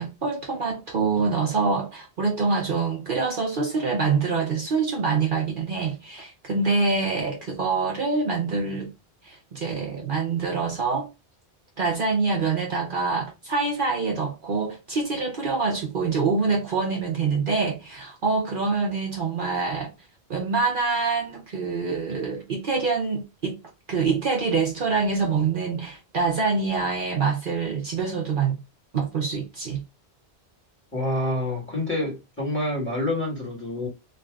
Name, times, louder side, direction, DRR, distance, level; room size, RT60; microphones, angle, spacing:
voice 1, 0.0-8.9 9.2-11.1 11.8-19.9 20.3-23.6 23.9-28.6 28.9-29.8, right 4 dB, 55° right, 0.9 m, -25 dB
voice 2, 30.9-33.9, left 1 dB, 10° left, 1.6 m, -27 dB
3.3 x 2.6 x 3.3 m
omnidirectional pair, 1.1 m